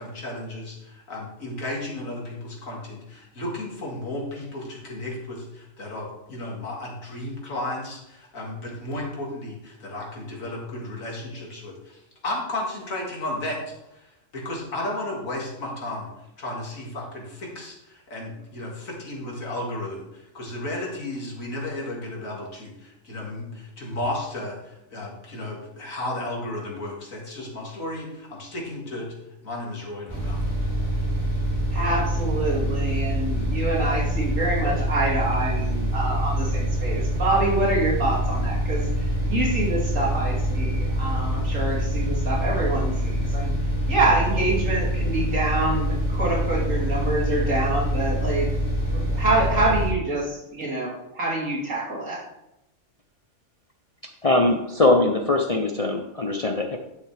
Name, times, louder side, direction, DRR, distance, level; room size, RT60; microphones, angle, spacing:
voice 1, 0.0-14.1 14.3-16.1 16.4-29.1 29.4-30.4, left 1 dB, 90° left, -2 dB, 2.6 m, -33 dB
sound 1, 30.1-49.9, equal, 20° right, 3.4 m, -25 dB
voice 2, 31.7-43.5 43.9-48.5 48.9-52.2, right 2 dB, 75° right, -4 dB, 2.8 m, -26 dB
voice 3, 54.2-56.8, left 2 dB, 40° left, 3 dB, 0.5 m, -21 dB
11.5 x 6.4 x 3.4 m, 0.87 s
omnidirectional pair, 1.4 m